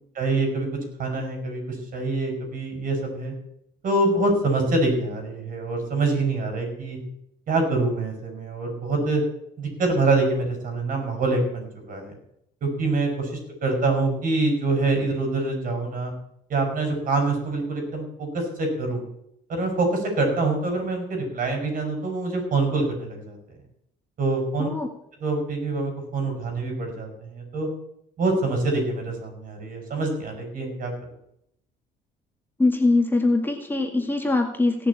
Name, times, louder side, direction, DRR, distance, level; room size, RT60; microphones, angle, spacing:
voice 1, 0.2-0.7 1.0-3.3 3.8-7.0 7.5-9.2 9.6-12.2 12.6-16.1 16.5-19.0 19.5-23.4 24.2-24.7 25.2-27.7 28.2-30.9, right 2 dB, 55° right, 4 dB, 6.6 m, -25 dB
voice 2, 32.6-34.9, left 2 dB, 10° left, 2 dB, 2.0 m, -22 dB
17.5 x 6.9 x 8.7 m, 0.75 s
cardioid pair, 110°, 17 cm